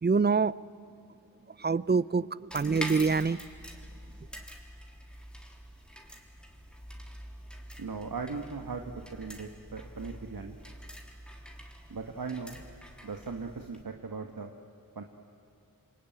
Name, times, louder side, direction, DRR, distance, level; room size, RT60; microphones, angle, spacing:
voice 1, 0.0-0.6 1.6-3.4, right 4 dB, 30° right, 19 dB, 0.6 m, -26 dB
sound 1, 2.5-13.8, equal, 5° left, 3.3 m, -45 dB
voice 2, 7.8-8.8 9.1-10.6 11.9-12.6 13.0-14.5 14.9-15.0, right 4 dB, 70° right, 4 dB, 1.6 m, -38 dB
28.0 x 22.5 x 9.2 m, 2.4 s
wide cardioid pair, 50°, 37 cm